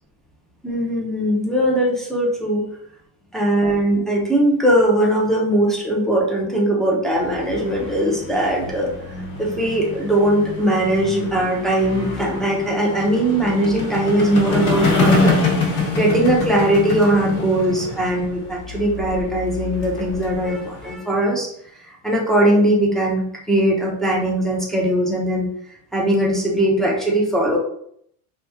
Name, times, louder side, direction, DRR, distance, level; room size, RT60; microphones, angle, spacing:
voice 1, 0.6-2.7 3.3-8.9 9.4-15.5 15.9-21.5 21.8-25.5 25.9-27.6, right 1 dB, ahead, -3 dB, 0.6 m, -20 dB
sound 1, 7.1-20.9, left 3 dB, 65° left, 1.1 m, -25 dB
2.9 x 2.3 x 3.4 m, 0.69 s
cardioid pair, 130°, 37 cm